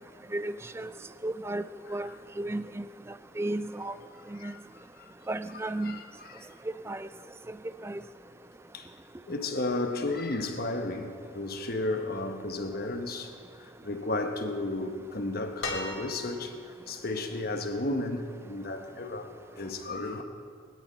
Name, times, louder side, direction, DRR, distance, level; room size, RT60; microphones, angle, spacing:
voice 1, 0.3-0.9 1.2-1.6 1.9-2.1 2.4-2.8 3.4-3.9 4.4-4.5 5.3-6.0 6.9-7.1 7.8-8.0, right 1 dB, 10° right, 0.3 m, -33 dB
voice 2, 4.4-5.1 5.8-6.5 8.7-8.9 9.3-20.2, left 2 dB, 45° left, 1.1 m, -34 dB
sound 1, 15.6-16.6 18.1-18.2, left 2 dB, 70° left, 2.9 m, -36 dB
21.5 x 11.5 x 4.5 m
head